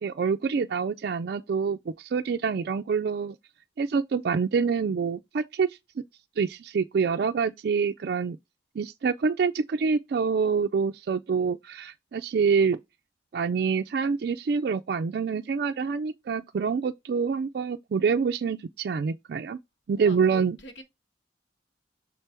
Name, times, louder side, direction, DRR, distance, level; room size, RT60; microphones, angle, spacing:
voice 1, 0.0-3.4 3.8-5.8 6.4-8.4 8.8-12.8 13.3-19.6 19.9-20.6, right 5 dB, 55° right, 0.3 m, -26 dB
voice 2, 19.9-20.8, equal, 80° left, 1.5 m, -45 dB
6.6 x 3.4 x 4.4 m
head